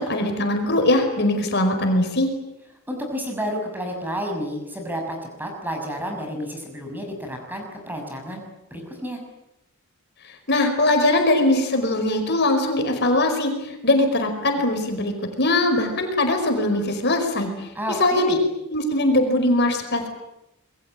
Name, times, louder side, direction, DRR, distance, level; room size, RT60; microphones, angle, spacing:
voice 1, 0.0-2.3 10.5-15.1 15.4-17.7 18.0-18.4 18.7-20.1, left 1 dB, 50° left, 5 dB, 5.0 m, -21 dB
voice 2, 2.9-8.4 8.7-9.2 17.7-18.4, equal, 10° right, 3 dB, 6.5 m, -30 dB
27.0 x 22.0 x 9.1 m, 0.88 s
head